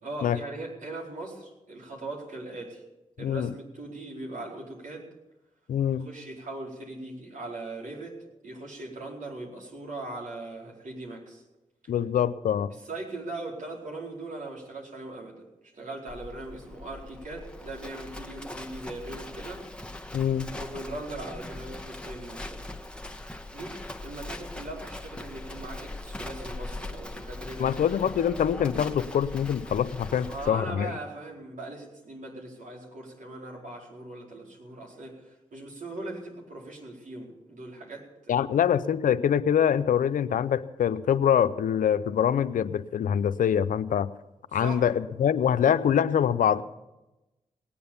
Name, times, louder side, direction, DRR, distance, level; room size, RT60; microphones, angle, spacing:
voice 1, 0.0-2.8 3.2-5.1 6.0-11.4 12.7-19.7 20.5-22.6 23.5-27.7 30.3-38.4 44.5-44.9, right 2 dB, 75° right, -2 dB, 4.5 m, -40 dB
voice 2, 3.2-3.5 5.7-6.1 11.9-12.7 20.1-20.5 27.6-30.9 38.3-44.1 44.5-46.6, left 9 dB, 85° left, 14 dB, 0.6 m, -24 dB
Livestock farm animals working animals, 16.1-30.5, left 2 dB, 5° left, 1.4 m, -40 dB
19.0 x 8.6 x 7.0 m, 0.99 s
supercardioid pair, 40°, 14 cm